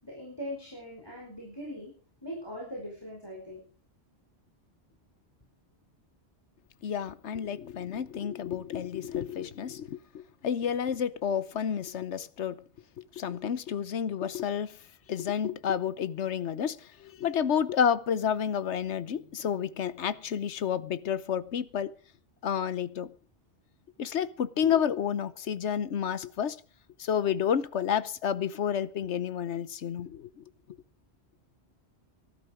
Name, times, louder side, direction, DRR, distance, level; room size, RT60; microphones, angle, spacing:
voice 1, 0.0-1.9 2.2-3.6, equal, 20° left, 4.7 m, -40 dB
voice 2, 6.8-12.6 13.0-14.8 15.1-21.9 22.4-23.1 24.0-26.6 27.0-30.4, left 8 dB, 85° left, 1.2 m, -30 dB
18.5 x 12.0 x 4.9 m
omnidirectional pair, 1.1 m